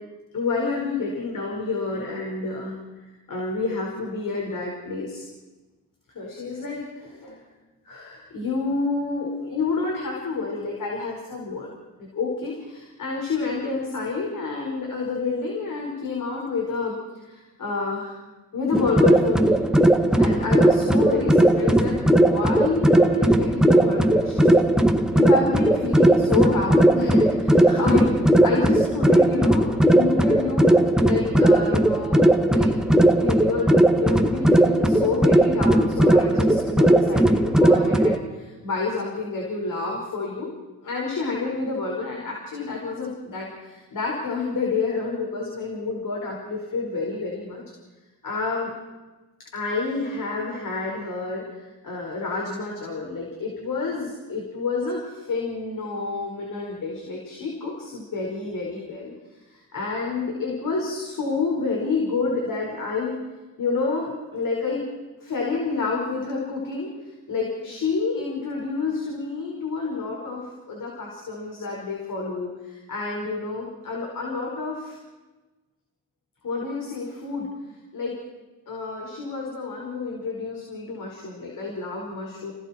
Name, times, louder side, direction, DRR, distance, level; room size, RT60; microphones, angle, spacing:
voice 1, 0.3-2.8 3.3-5.2 6.1-7.4 7.8-11.7 12.0-18.2 18.5-19.7 20.2-30.7 31.0-32.7 33.2-40.5 40.8-47.6 48.2-48.7 49.4-63.1 63.6-64.8 65.2-75.0 76.4-77.5 77.9-78.2 78.7-82.5, left 4 dB, 60° left, -1 dB, 5.3 m, -29 dB
sound 1, 18.7-38.2, right 1 dB, ahead, 1.8 m, -18 dB
30.0 x 19.5 x 4.6 m, 1.2 s
cardioid pair, 70°, 36 cm